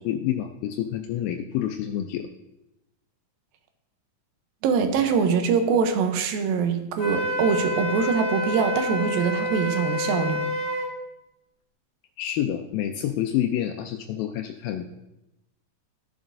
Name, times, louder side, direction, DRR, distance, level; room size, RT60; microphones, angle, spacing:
voice 1, 0.0-2.3 12.2-15.0, left 11 dB, 85° left, 4 dB, 2.3 m, -28 dB
voice 2, 4.6-10.5, right 6 dB, 80° right, 7 dB, 2.5 m, -23 dB
Wind instrument woodwind instrument, 7.0-10.9, left 1 dB, 40° left, 2.3 m, -28 dB
15.0 x 7.1 x 2.6 m, 0.94 s
omnidirectional pair, 4.2 m